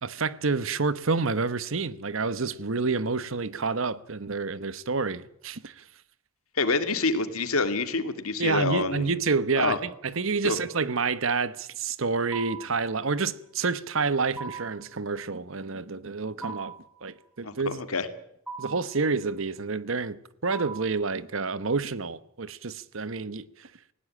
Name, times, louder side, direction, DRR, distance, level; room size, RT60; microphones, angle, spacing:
voice 1, 0.0-5.8 8.4-16.7 17.0-17.8 18.6-23.7, right 4 dB, 65° right, 1.0 m, -28 dB
voice 2, 6.6-9.1 9.6-9.8 10.4-10.6 17.4-18.1, left 3 dB, 90° left, 2.3 m, -27 dB
sound 1, 12.3-12.8 14.4-14.9 16.4-16.9 18.5-18.9 20.5-21.0, right 4 dB, 5° right, 4.6 m, -39 dB
19.5 x 17.0 x 8.8 m
head